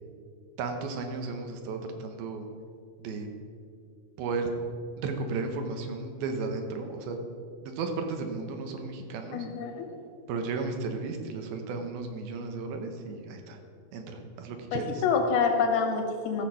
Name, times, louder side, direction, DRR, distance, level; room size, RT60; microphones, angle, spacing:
voice 1, 0.6-2.5 3.0-3.3 4.2-4.5 5.0-7.2 7.6-9.5 10.3-13.6 13.9-15.0, right 4 dB, 85° right, 5 dB, 2.9 m, -34 dB
voice 2, 9.3-9.9 14.7-16.5, left 5 dB, 80° left, 5 dB, 3.0 m, -27 dB
14.0 x 6.8 x 5.6 m, 2.2 s
omnidirectional pair, 4.3 m